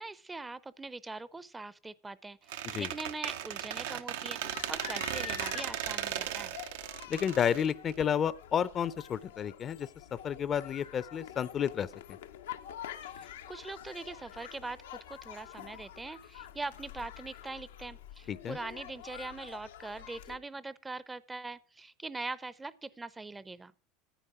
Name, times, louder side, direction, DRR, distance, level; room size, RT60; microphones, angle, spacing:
voice 1, 0.0-6.6 13.0-23.7, right 3 dB, 15° right, 0.5 m, -42 dB
Squeak, 2.5-8.3, right 11 dB, 80° right, 0.8 m, -37 dB
sound 1, 4.4-20.4, left 11 dB, 90° left, 0.7 m, -47 dB
voice 2, 7.1-9.9 10.2-11.9 18.3-18.6, left 8 dB, 35° left, 0.5 m, -31 dB
10.0 x 9.0 x 4.8 m
supercardioid pair, 100°, 0 cm